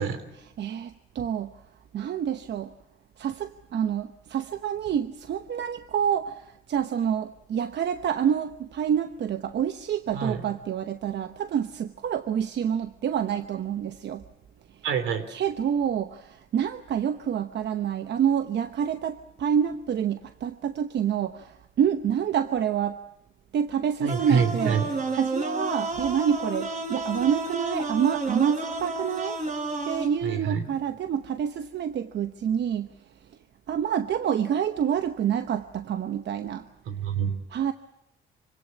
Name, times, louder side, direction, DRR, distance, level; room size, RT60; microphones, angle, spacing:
voice 1, 0.3-1.5 1.9-2.7 3.2-14.2 15.3-23.0 23.5-29.4 29.8-32.9 33.7-36.7 37.5-37.7, right 8 dB, 60° right, 9 dB, 1.0 m, -27 dB
voice 2, 14.8-15.2 24.0-24.8 30.2-30.6 36.9-37.3, right 6 dB, 85° right, 8 dB, 3.4 m, -26 dB
sound 1, 24.1-30.1, right 2 dB, 40° right, 5.9 m, -31 dB
25.0 x 17.5 x 8.4 m, 0.91 s
cardioid pair, 90°, 20 cm